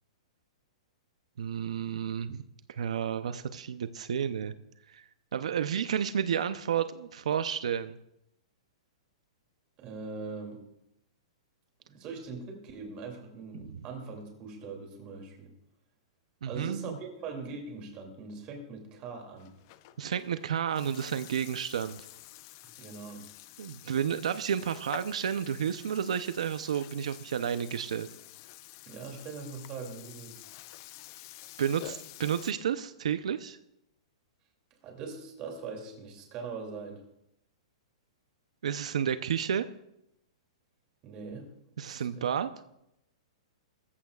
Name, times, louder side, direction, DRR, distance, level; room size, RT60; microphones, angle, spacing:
voice 1, 1.4-2.4 2.7-4.5 4.9-8.0 13.5-13.6 16.4-17.0 20.0-22.0 23.6-28.1 31.6-33.6 38.6-39.6 41.8-42.5, right 8 dB, 85° right, 11 dB, 0.6 m, -31 dB
voice 2, 9.8-10.6 11.9-15.5 16.5-19.5 22.8-23.2 28.9-30.4 34.8-37.0 41.0-41.5 41.8-42.3, right 4 dB, 25° right, 2 dB, 2.7 m, -41 dB
Burping eructation, 19.4-32.5, left 14 dB, 30° left, 0.5 m, -49 dB
21.5 x 14.5 x 2.4 m, 0.82 s
hypercardioid pair, 170°, 3 cm